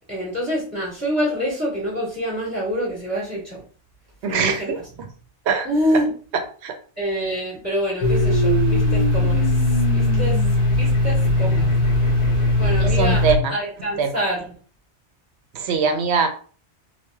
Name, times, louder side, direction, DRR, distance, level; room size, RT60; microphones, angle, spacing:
voice 1, 0.1-3.6 4.3-4.7 5.6-6.1 7.0-9.5 9.9-10.4 10.7-11.6 12.5-13.2 13.5-14.4, equal, 15° right, -6 dB, 1.2 m, -26 dB
voice 2, 4.2-4.8 5.5-5.7 6.3-6.8 12.8-13.5 14.0-14.2 15.5-16.3, right 5 dB, 75° right, 6 dB, 0.8 m, -22 dB
Domestic sounds home sounds, 8.0-13.4, left 1 dB, 35° left, 0.7 m, -19 dB
3.0 x 2.6 x 2.2 m, 0.41 s
omnidirectional pair, 1.2 m